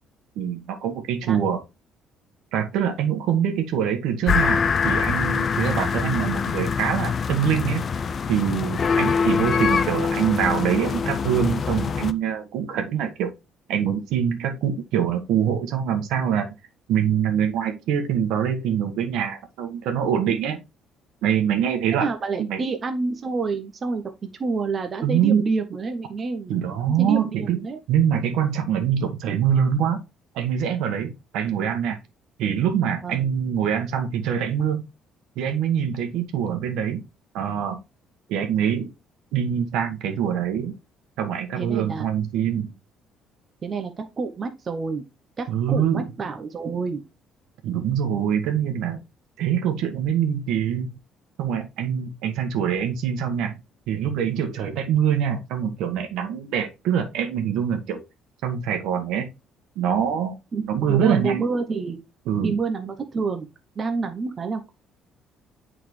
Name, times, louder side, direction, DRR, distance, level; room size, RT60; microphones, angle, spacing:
voice 1, 0.3-1.6 2.5-7.8 8.3-13.3 13.7-16.5 16.9-20.6 21.2-22.1 22.4-22.6 25.0-25.4 26.5-30.0 30.3-32.0 32.4-34.8 35.3-37.0 37.3-37.8 38.3-38.9 39.3-40.7 41.2-42.7 45.5-46.1 47.6-49.0 49.4-50.9 51.4-53.6 53.9-58.0 58.4-59.3 59.7-61.4 62.3-62.5, right 8 dB, 80° right, 6 dB, 1.3 m, -24 dB
sound 1, 4.3-12.1, left 6 dB, 30° left, 0.4 m, -24 dB
voice 2, 21.9-26.5 27.0-27.8 33.0-33.2 41.6-42.1 43.6-45.0 45.4-47.0 60.5-62.0 62.4-63.5 63.8-64.7, right 4 dB, 30° right, 6 dB, 0.6 m, -28 dB
9.0 x 3.9 x 3.1 m, 0.26 s
cardioid pair, 160°, 0 cm